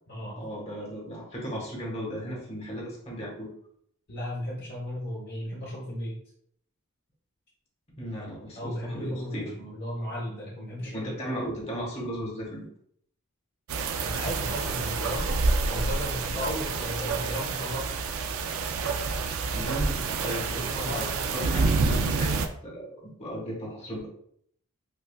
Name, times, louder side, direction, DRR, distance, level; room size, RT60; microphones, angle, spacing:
voice 1, 0.4-3.5 8.0-9.5 10.8-12.7 19.5-24.1, equal, 30° left, -3 dB, 1.2 m, -36 dB
voice 2, 4.1-6.2 8.6-11.1 14.0-15.3 15.7-17.9 20.2-21.7, equal, 50° left, -5 dB, 0.8 m, -35 dB
sound 1, 13.7-22.5, right 4 dB, 65° right, 0.4 m, -28 dB
5.2 x 2.3 x 2.3 m, 0.67 s
head